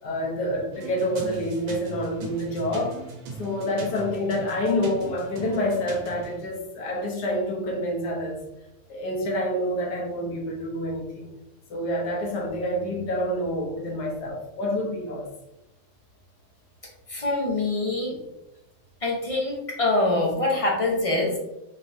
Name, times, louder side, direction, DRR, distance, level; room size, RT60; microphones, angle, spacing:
voice 1, 0.0-2.9 3.4-8.4 8.9-11.3 11.7-15.3, left 1 dB, 70° left, -2 dB, 1.6 m, -27 dB
sound 1, 0.7-6.4, right 3 dB, 90° right, 1.5 m, -39 dB
voice 2, 17.1-18.2 19.0-21.4, left 2 dB, 30° left, -2 dB, 0.7 m, -24 dB
4.6 x 3.2 x 2.7 m, 0.91 s
omnidirectional pair, 1.8 m